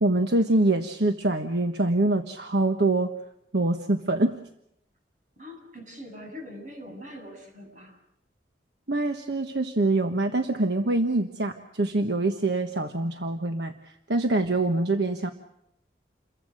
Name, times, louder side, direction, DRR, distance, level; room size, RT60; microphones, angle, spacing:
voice 1, 0.0-3.1 3.5-4.3 8.9-15.3, right 2 dB, 70° right, 6 dB, 1.3 m, -25 dB
voice 2, 5.4-8.0 12.7-13.2, equal, 45° right, 3 dB, 7.7 m, -43 dB
29.0 x 22.5 x 6.5 m, 0.76 s
head